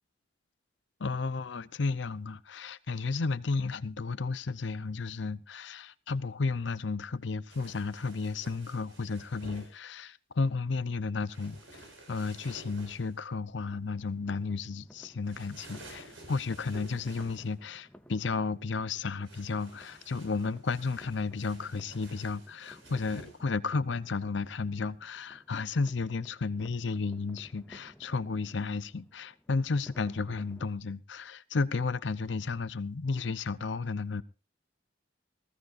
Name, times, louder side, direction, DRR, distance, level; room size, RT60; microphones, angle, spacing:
voice 1, 1.0-11.8 12.1-34.2, left 4 dB, 65° left, 0.6 m, -33 dB
sound 1, 7.5-9.7 11.3-13.2 15.2-17.6 19.2-23.4, right 1 dB, 85° right, 5.4 m, -51 dB
sound 2, 13.6-30.7, equal, 5° left, 0.7 m, -58 dB
19.5 x 15.5 x 2.5 m
head